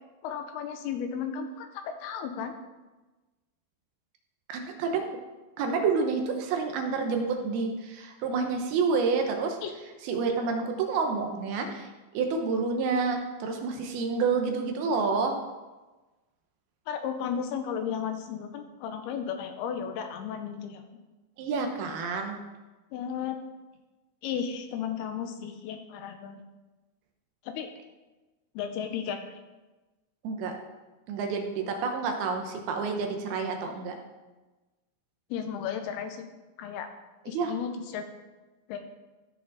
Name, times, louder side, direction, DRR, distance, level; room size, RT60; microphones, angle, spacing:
voice 1, 0.2-2.5 9.6-9.7 16.9-20.8 22.9-23.4 24.2-26.4 27.4-27.7 28.6-29.4 35.3-36.3 36.6-36.9 37.3-38.1 38.7-38.8, left 7 dB, 85° left, 6 dB, 2.3 m, -34 dB
voice 2, 4.5-5.1 5.6-9.6 10.0-11.9 12.1-15.3 21.4-22.4 30.2-30.5 31.1-34.0 37.3-37.5, right 4 dB, 75° right, 4 dB, 2.5 m, -28 dB
15.0 x 6.3 x 4.0 m, 1.2 s
omnidirectional pair, 5.2 m